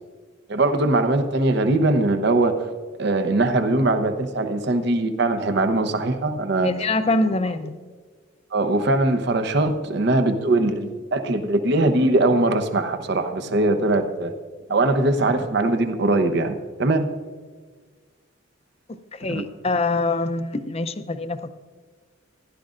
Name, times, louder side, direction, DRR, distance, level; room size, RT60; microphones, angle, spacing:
voice 1, 0.5-2.7 3.0-6.7 8.5-14.3 14.7-17.1 19.3-19.4, right 2 dB, 60° right, 7 dB, 0.8 m, -21 dB
voice 2, 6.6-7.8 19.1-21.5, left 2 dB, 30° left, 10 dB, 0.5 m, -24 dB
16.0 x 11.5 x 2.5 m, 1.5 s
head